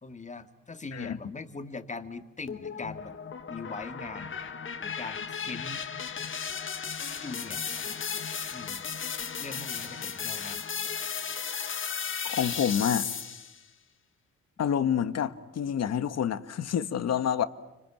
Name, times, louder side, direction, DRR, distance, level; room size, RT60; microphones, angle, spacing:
voice 1, 0.0-3.2 3.5-4.5 4.8-5.8 7.2-7.7 8.5-8.8 9.4-10.6 12.5-12.8, left 3 dB, 25° left, 2.3 m, -41 dB
sound 1, 2.5-13.6, left 6 dB, 40° left, 2.1 m, -35 dB
voice 2, 12.2-13.1 14.6-17.5, left 8 dB, 60° left, 1.6 m, -28 dB
30.0 x 25.5 x 7.4 m
cardioid pair, 90°, 30 cm